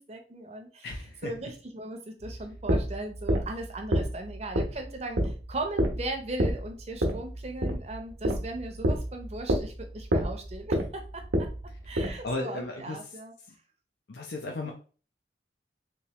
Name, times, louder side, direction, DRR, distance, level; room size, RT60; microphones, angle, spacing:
voice 1, 0.0-0.9 1.2-11.5 11.9-13.3 14.6-14.7, right 2 dB, 35° right, 5 dB, 0.6 m, -38 dB
voice 2, 0.8-1.3 12.2-13.0 14.1-14.7, left 2 dB, 65° left, 1 dB, 0.5 m, -35 dB
sound 1, 2.2-12.3, equal, 90° right, 0.8 m, -28 dB
3.2 x 3.1 x 3.0 m, 0.38 s
head